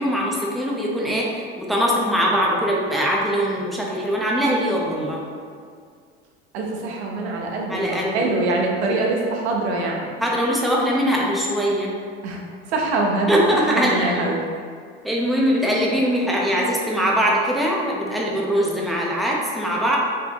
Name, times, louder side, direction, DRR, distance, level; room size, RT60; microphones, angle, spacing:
voice 1, 0.0-5.2 7.7-8.2 10.2-11.9 13.3-14.3 15.0-20.0, equal, ahead, -3 dB, 0.8 m, -22 dB
voice 2, 6.5-10.1 12.2-12.4 12.7-13.4 13.7-14.4, right 2 dB, 80° right, 0 dB, 0.9 m, -24 dB
5.0 x 3.4 x 2.9 m, 2.1 s
hypercardioid pair, 95°, 32 cm